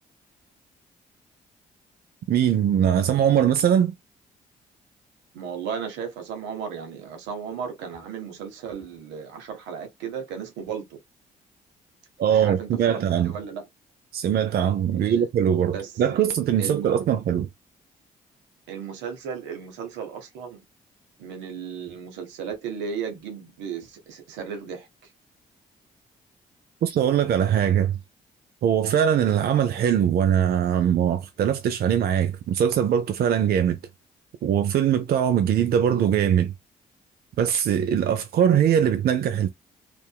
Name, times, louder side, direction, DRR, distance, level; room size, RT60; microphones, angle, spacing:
voice 1, 2.3-3.9 12.2-13.3 14.1-17.5 26.8-28.0 28.6-33.8 34.4-36.5 37.4-39.5, right 9 dB, 60° right, 0.4 m, -21 dB
voice 2, 5.3-11.0 12.3-13.6 15.0-15.3 15.6-15.9 16.6-16.9 18.7-20.6 21.2-24.9, right 7 dB, 80° right, 0.8 m, -35 dB
2.7 x 2.5 x 2.2 m
hypercardioid pair, 50°, 18 cm